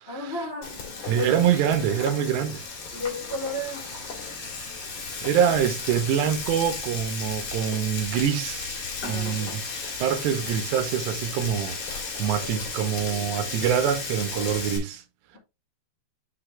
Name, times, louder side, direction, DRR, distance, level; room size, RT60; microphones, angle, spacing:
voice 1, 0.0-0.8 1.1-1.4 2.9-3.9 9.1-9.6, left 1 dB, 80° left, 0.5 m, -33 dB
Frying (food), 0.6-14.8, left 4 dB, 45° left, 2.6 m, -34 dB
voice 2, 1.1-2.6 5.2-8.8 9.0-9.6 10.0-15.0, right 9 dB, 80° right, 3.0 m, -25 dB
7.9 x 4.0 x 3.2 m
omnidirectional pair, 5.0 m